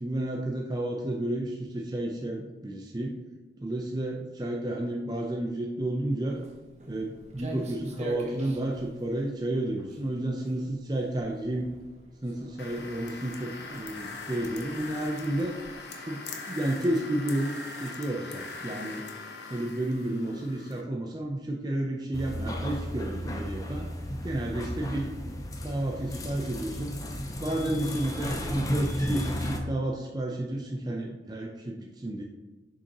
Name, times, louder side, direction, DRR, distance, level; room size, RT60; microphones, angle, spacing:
voice 1, 0.0-3.2 3.6-6.4 6.9-11.7 12.2-15.6 16.0-19.1 19.5-23.9 24.2-27.0 27.4-32.2, right 1 dB, 20° right, 0 dB, 0.5 m, -31 dB
Walk footsteps, 6.3-15.8, right 1 dB, 40° right, 0.9 m, -46 dB
sound 1, 12.6-20.8, left 3 dB, 70° left, 0.9 m, -41 dB
sound 2, 22.1-29.6, equal, 20° left, 0.6 m, -33 dB
6.8 x 5.2 x 2.9 m, 1.2 s
head